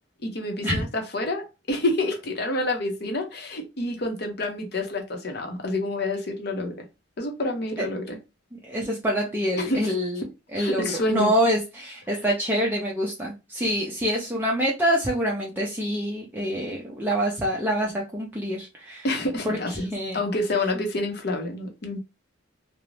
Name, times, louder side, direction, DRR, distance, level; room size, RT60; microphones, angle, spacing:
voice 1, 0.2-6.7 7.2-8.2 9.6-9.9 10.6-11.3 19.0-22.0, left 2 dB, 55° left, 0.7 m, -28 dB
voice 2, 8.5-10.2 10.5-19.1 19.4-20.2, equal, 10° right, 0.4 m, -26 dB
2.5 x 2.0 x 3.0 m
head